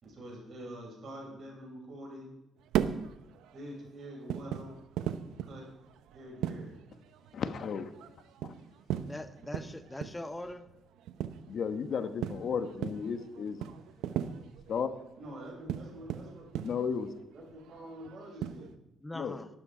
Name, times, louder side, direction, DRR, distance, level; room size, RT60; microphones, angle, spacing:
voice 1, 0.0-2.3 3.5-4.7 5.4-5.7 6.1-6.8 15.2-16.5 17.3-18.7, equal, 55° right, -2 dB, 6.4 m, -46 dB
sound 1, 2.6-18.8, right 10 dB, 90° right, 0.7 m, -38 dB
voice 2, 7.3-7.9 8.4-8.6 11.5-13.6 14.7-14.9 16.6-17.1 19.1-19.4, left 6 dB, 60° left, 10 dB, 1.1 m, -33 dB
voice 3, 9.1-10.7 19.0-19.5, left 1 dB, 15° left, 12 dB, 0.7 m, -41 dB
12.0 x 12.0 x 4.9 m, 0.86 s
cardioid pair, 90°, 0 cm